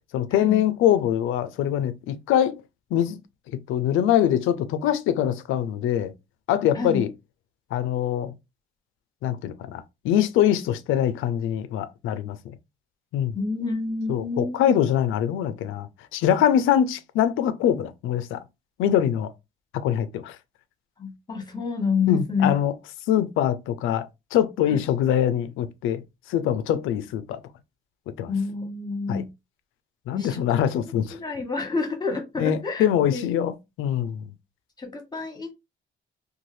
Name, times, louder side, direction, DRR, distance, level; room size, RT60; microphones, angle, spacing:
voice 1, 0.1-2.6 2.9-3.2 3.7-6.1 6.5-7.1 7.7-8.3 9.2-12.5 13.1-13.3 14.1-15.9 16.1-18.4 18.8-19.3 19.7-20.4 22.1-22.7 23.1-26.0 26.3-27.4 28.2-28.3 29.1-29.2 30.1-31.2 32.4-34.3, left 10 dB, 90° left, 0.4 m, -23 dB
voice 2, 13.3-14.8 21.0-22.5 24.7-24.8 28.3-29.3 30.1-30.4 31.1-32.9 33.1-33.2 34.8-35.5, left 4 dB, 20° left, 1.2 m, -28 dB
2.7 x 2.3 x 3.1 m
cardioid pair, 90°, 20 cm